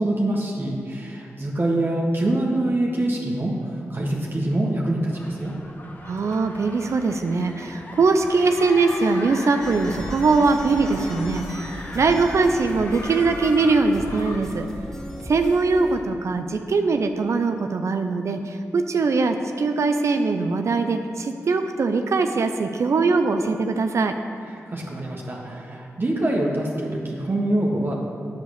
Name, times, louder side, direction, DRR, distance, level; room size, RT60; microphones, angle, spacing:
voice 1, 0.0-3.5 3.9-5.5 24.7-27.9, right 1 dB, 40° right, -2 dB, 1.6 m, -24 dB
sound 1, 5.1-13.8, left 1 dB, 35° left, 1.4 m, -40 dB
voice 2, 6.0-14.7 15.2-24.2, right 3 dB, 65° right, 6 dB, 0.6 m, -21 dB
sound 2, 8.2-14.4, left 2 dB, 85° left, 0.9 m, -39 dB
sound 3, 9.6-16.0, equal, 10° left, 2.0 m, -37 dB
8.1 x 6.9 x 6.5 m, 2.4 s
supercardioid pair, 40°, 5 cm